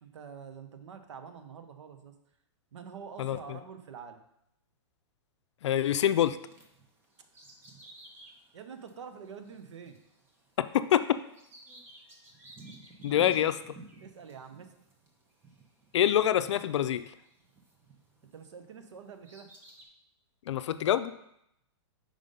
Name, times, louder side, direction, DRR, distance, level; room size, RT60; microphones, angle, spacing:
voice 1, 0.0-2.1 2.7-4.2 8.5-10.0 13.1-13.4 14.0-14.7 18.3-19.5, right 6 dB, 80° right, 8 dB, 0.8 m, -46 dB
voice 2, 5.6-6.4 10.7-11.1 13.0-13.7 15.9-17.0 20.5-21.1, left 11 dB, 75° left, 12 dB, 0.4 m, -25 dB
Bird vocalization bird call bird song, 6.4-18.5 19.0-19.9, right 2 dB, 15° right, 0.8 m, -54 dB
5.0 x 3.8 x 5.2 m, 0.77 s
hypercardioid pair, 155°, 15 cm